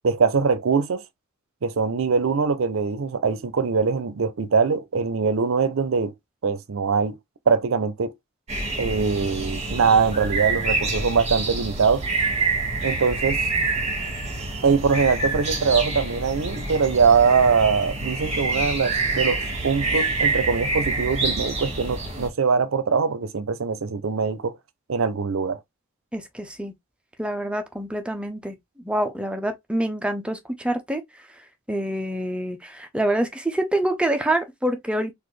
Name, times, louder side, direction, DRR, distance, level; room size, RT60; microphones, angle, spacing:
voice 1, 0.0-1.0 1.6-6.1 6.4-7.2 7.5-8.1 8.8-12.0 12.8-13.4 14.6-24.6 24.9-25.6, right 5 dB, 75° right, 0.5 m, -22 dB
sound 1, 8.5-22.3, right 3 dB, 30° right, 1.3 m, -27 dB
voice 2, 26.1-26.7 27.2-31.0 31.7-35.1, right 1 dB, 5° right, 0.6 m, -26 dB
4.1 x 2.5 x 3.1 m
head